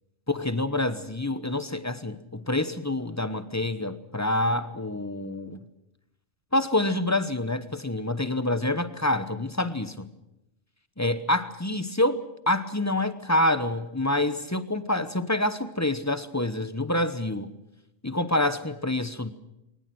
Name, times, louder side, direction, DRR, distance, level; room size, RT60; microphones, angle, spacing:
voice 1, 0.3-5.6 6.5-10.1 11.0-17.5 18.0-19.3, left 1 dB, 15° left, 0.9 m, -27 dB
22.0 x 20.0 x 7.8 m
omnidirectional pair, 1.3 m